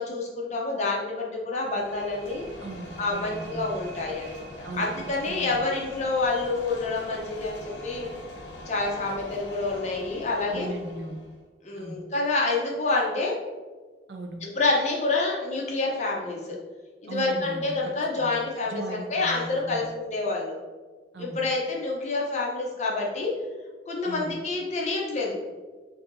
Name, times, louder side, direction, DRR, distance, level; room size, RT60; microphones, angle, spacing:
voice 1, 0.0-2.4 3.0-8.1 8.7-10.7 11.6-13.3 14.4-16.6 17.0-20.5 21.2-23.3 23.9-25.4, left 3 dB, 40° left, -2 dB, 0.6 m, -28 dB
sound 1, 1.6-11.4, left 1 dB, 70° left, 0.8 m, -43 dB
voice 2, 2.6-3.8 4.6-4.9 5.3-5.6 10.5-11.2 11.7-12.0 14.1-14.4 17.1-17.9 18.2-18.4 18.6-19.8 21.1-21.4 24.0-24.3, right 1 dB, 75° right, 3 dB, 0.6 m, -38 dB
6.9 x 2.6 x 2.6 m, 1.4 s
head